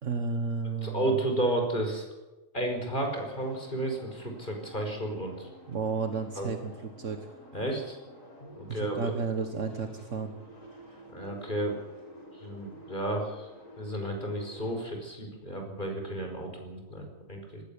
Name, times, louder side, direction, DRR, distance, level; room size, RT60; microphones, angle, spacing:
voice 1, 0.0-1.2 5.7-7.4 8.7-10.3, right 4 dB, 70° right, 7 dB, 1.8 m, -32 dB
voice 2, 0.8-2.1 2.5-5.5 6.4-6.5 7.5-8.0 8.4-9.1 11.1-11.8 12.3-13.5 13.8-17.6, right 1 dB, 40° left, 3 dB, 5.5 m, -32 dB
sound 1, 3.0-14.9, equal, 80° left, 6.4 m, -50 dB
19.0 x 16.5 x 8.7 m, 1.1 s
omnidirectional pair, 1.3 m